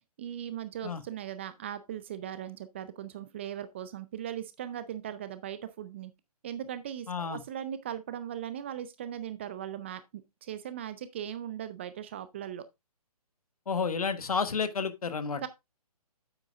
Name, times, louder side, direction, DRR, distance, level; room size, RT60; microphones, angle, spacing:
voice 1, 0.2-6.1 6.4-12.6 15.4-15.5, right 10 dB, 20° right, 0.4 m, -39 dB
voice 2, 7.1-7.4 13.7-15.4, left 5 dB, 65° left, 1.3 m, -31 dB
9.0 x 8.0 x 2.3 m
figure-of-eight pair, 140°, 20 cm